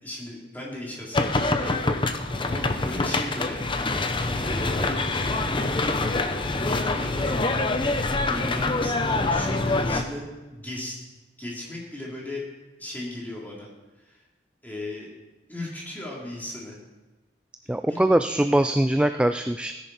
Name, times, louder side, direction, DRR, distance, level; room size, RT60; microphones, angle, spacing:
voice 1, 0.0-1.8 2.4-5.0 6.1-7.4 8.2-11.0 11.4-12.4 12.8-13.7 14.0-14.2 14.6-15.1 15.5-16.7 17.6-18.1, left 1 dB, 10° left, -4 dB, 3.3 m, -37 dB
sound 1, 1.1-10.0, left 2 dB, 25° left, 0.8 m, -25 dB
voice 2, 17.7-19.7, right 1 dB, 5° right, 8 dB, 0.3 m, -22 dB
17.5 x 10.5 x 4.2 m, 1.1 s
head